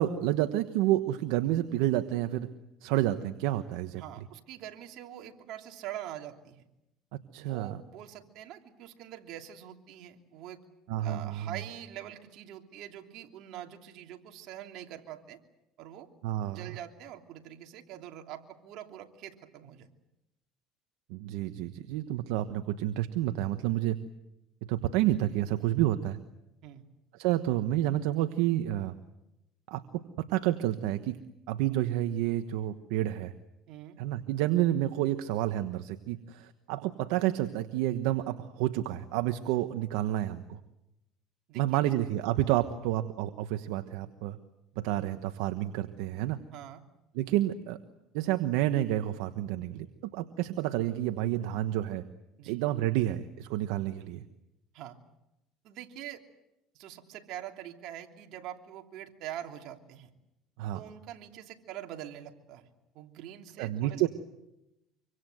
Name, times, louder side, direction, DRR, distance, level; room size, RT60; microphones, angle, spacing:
voice 1, 0.0-2.5 2.8-4.0 7.3-7.8 10.9-11.5 16.2-16.7 21.1-24.0 24.7-26.2 27.1-28.9 29.7-31.2 31.5-33.3 34.0-40.6 41.5-44.4 44.8-46.4 47.1-47.8 48.1-52.0 52.5-54.2 60.6-60.8 63.6-64.1, right 14 dB, 80° right, 9 dB, 1.2 m, -29 dB
voice 2, 4.0-6.6 7.4-10.6 11.0-15.4 15.8-16.1 16.5-19.9 26.6-26.8 33.7-34.0 41.5-41.8 46.5-46.8 52.4-52.6 54.7-55.0 55.6-56.2 56.7-60.1 60.7-62.7 62.9-64.1, right 11 dB, 65° right, 4 dB, 3.0 m, -44 dB
25.5 x 25.0 x 7.9 m, 0.89 s
supercardioid pair, 105°, 0 cm